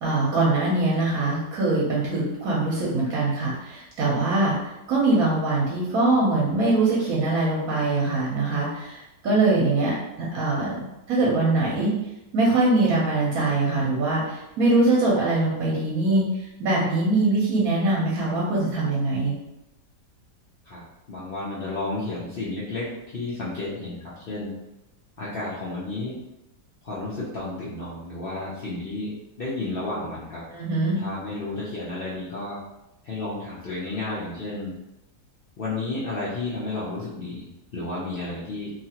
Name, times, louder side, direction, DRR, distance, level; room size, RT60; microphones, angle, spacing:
voice 1, 0.0-4.6 4.9-11.9 12.3-19.3 30.5-31.0, right 2 dB, 65° right, -5 dB, 1.1 m, -23 dB
voice 2, 20.6-24.5 25.2-26.2 26.8-30.5 31.0-32.6 33.0-34.7 35.6-38.7, left 2 dB, 85° left, -8 dB, 0.5 m, -32 dB
2.9 x 2.4 x 2.8 m, 0.92 s
omnidirectional pair, 1.8 m